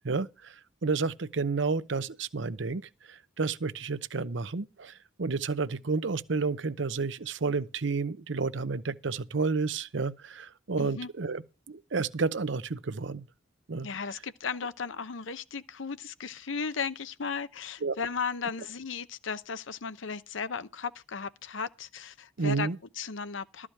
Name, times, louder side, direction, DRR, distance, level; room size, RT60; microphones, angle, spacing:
voice 1, 0.0-0.5 0.8-2.8 3.1-11.4 11.7-13.3 13.7-13.9 17.8-17.9 22.4-22.8, right 4 dB, 70° right, 0.7 m, -31 dB
voice 2, 10.8-11.1 13.8-22.7 22.9-23.7, left 5 dB, 75° left, 0.8 m, -35 dB
13.0 x 4.8 x 8.8 m
head